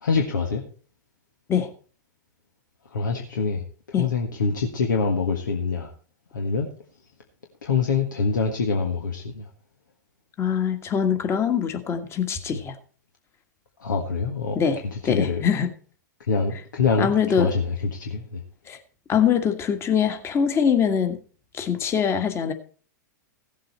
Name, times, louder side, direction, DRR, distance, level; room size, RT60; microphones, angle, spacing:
voice 1, 0.0-0.6 2.9-5.9 6.3-6.7 7.6-9.5 13.8-14.6 14.9-15.4 16.3-18.4, left 4 dB, 80° left, 1 dB, 1.6 m, -25 dB
voice 2, 10.4-12.7 14.5-15.7 17.0-17.5 18.7-18.8 19.1-21.2 21.5-22.5, left 7 dB, 25° left, 7 dB, 1.7 m, -23 dB
16.0 x 7.6 x 4.3 m, 0.41 s
hypercardioid pair, 110°, 10 cm